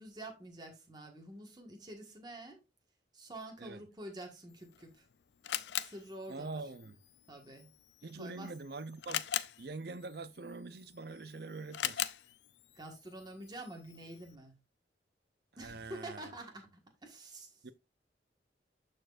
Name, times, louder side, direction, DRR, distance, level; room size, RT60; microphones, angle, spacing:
voice 1, 0.0-2.6 3.1-5.1 5.7-6.5 7.3-7.7 8.2-8.5 12.7-14.6 15.6-17.6, right 1 dB, 25° right, 1.7 m, -48 dB
Camera, 4.5-14.4, left 11 dB, 70° left, 0.5 m, -43 dB
voice 2, 6.3-7.0 8.0-9.3 9.6-12.1 15.6-16.3 17.6-17.7, right 3 dB, 60° right, 0.6 m, -44 dB
12.5 x 4.5 x 2.5 m
head